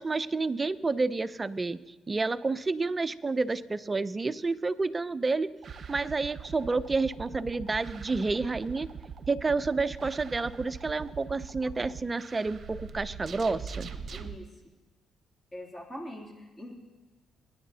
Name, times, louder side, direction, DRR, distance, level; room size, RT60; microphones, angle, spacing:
voice 1, 0.0-1.8 2.1-5.5 5.9-8.9 9.3-13.9, right 3 dB, 25° right, 13 dB, 0.5 m, -29 dB
sound 1, 5.6-14.4, right 6 dB, 50° right, 0.8 m, -42 dB
voice 2, 14.1-14.5 15.5-16.7, equal, 25° left, -2 dB, 2.7 m, -42 dB
22.0 x 10.0 x 2.8 m, 1.2 s
cardioid pair, 90°, 0 cm